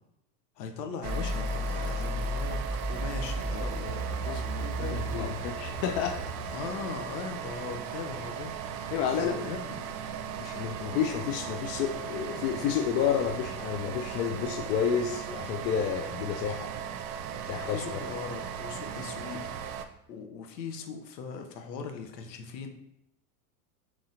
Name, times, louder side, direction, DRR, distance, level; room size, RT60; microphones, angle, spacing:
voice 1, 0.6-2.6 2.9-5.3 6.5-8.5 9.2-9.9 17.7-19.8 20.1-22.7, left 5 dB, 80° left, 5 dB, 1.0 m, -39 dB
sound 1, 1.0-6.6, equal, 15° left, 0.9 m, -34 dB
sound 2, 1.0-19.8, right 8 dB, 65° right, 0.6 m, -38 dB
voice 2, 4.8-6.6 8.9-9.4 10.4-16.7 17.4-18.0, left 8 dB, 55° left, 5 dB, 0.5 m, -30 dB
4.7 x 3.7 x 2.8 m, 0.80 s
supercardioid pair, 115°, 48 cm